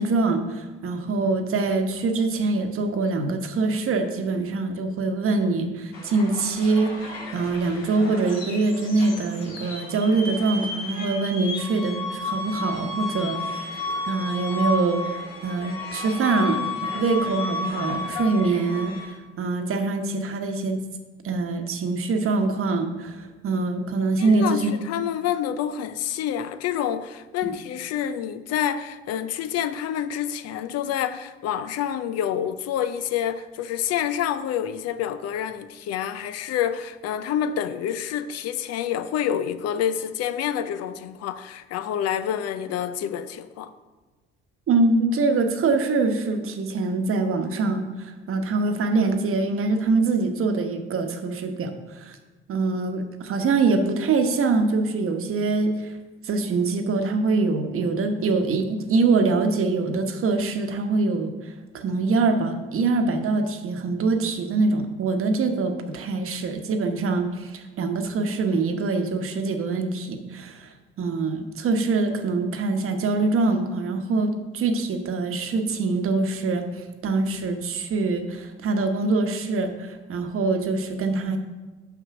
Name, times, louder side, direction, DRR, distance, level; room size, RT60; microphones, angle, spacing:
voice 1, 0.0-13.7 14.1-15.0 15.4-20.8 21.2-24.7 44.7-51.7 52.0-52.2 52.5-55.9 56.2-70.7 71.0-76.6 77.0-81.4, right 3 dB, 45° right, 1.1 m, -24 dB
sound 1, 5.9-19.1, left 3 dB, 85° left, 1.9 m, -32 dB
voice 2, 24.2-43.7, left 9 dB, 55° left, 0.6 m, -28 dB
5.9 x 5.4 x 6.0 m
hypercardioid pair, 65°, 30 cm